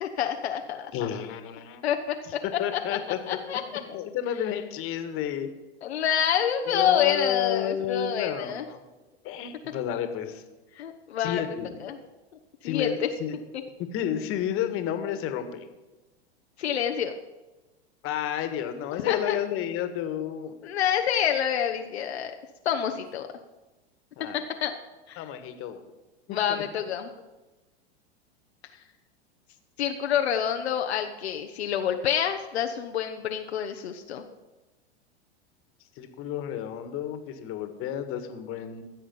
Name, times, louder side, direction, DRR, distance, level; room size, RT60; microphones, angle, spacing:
voice 1, 0.0-0.9 1.8-3.0 3.3-3.8 5.8-8.6 10.7-11.4 11.8-12.0 12.6-13.1 16.6-17.2 19.1-19.4 20.6-22.3 22.6-23.3 24.3-24.8 25.1-25.2 26.3-27.1 29.8-34.2, left 9 dB, 80° left, 5 dB, 0.9 m, -27 dB
voice 2, 0.9-1.8 2.6-3.2 3.9-5.5 6.7-8.8 9.2-10.4 11.2-11.8 12.6-13.4 13.9-15.6 18.0-20.5 24.2-24.4 25.2-25.8 26.3-26.6 36.0-38.8, left 10 dB, 40° left, 8 dB, 1.6 m, -31 dB
15.5 x 7.2 x 5.4 m, 1.1 s
hypercardioid pair, 100°, 32 cm